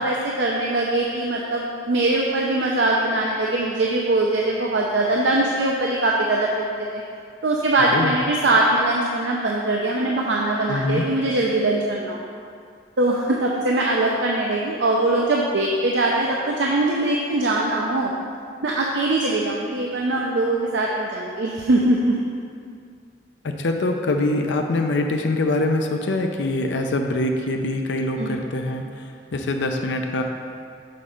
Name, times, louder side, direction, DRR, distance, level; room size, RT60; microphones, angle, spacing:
voice 1, 0.0-6.6 6.9-7.0 7.4-12.2 13.0-18.1 18.6-22.2 28.2-28.4, right 2 dB, 80° right, -2 dB, 0.6 m, -22 dB
voice 2, 10.7-11.1 23.4-28.8 29.3-30.2, left 2 dB, 80° left, 4 dB, 0.5 m, -24 dB
6.9 x 4.2 x 5.1 m, 2.3 s
head